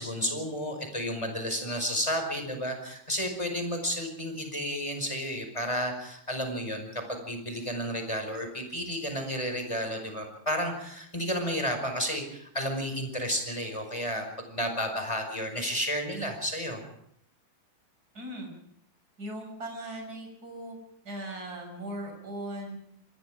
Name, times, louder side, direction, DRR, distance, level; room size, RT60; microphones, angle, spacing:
voice 1, 0.0-16.8, equal, 10° left, 5 dB, 5.0 m, -32 dB
voice 2, 18.1-18.5 19.2-20.8 21.0-22.8, right 1 dB, 25° right, 2 dB, 7.0 m, -38 dB
27.0 x 21.0 x 5.0 m, 0.71 s
omnidirectional pair, 4.3 m